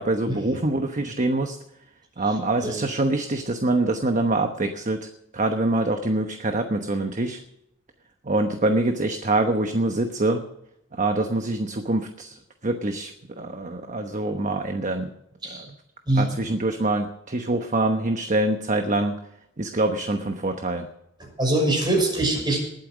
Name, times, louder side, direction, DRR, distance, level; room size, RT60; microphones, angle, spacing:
voice 1, 0.0-1.6 2.2-5.1 5.3-7.4 8.2-10.4 10.9-12.4 12.6-15.1 15.5-15.6 16.2-19.1 19.6-20.9, right 2 dB, 40° right, 6 dB, 1.1 m, -25 dB
voice 2, 21.2-22.6, right 2 dB, 25° right, 1 dB, 6.2 m, -24 dB
20.0 x 8.9 x 6.3 m, 0.80 s
head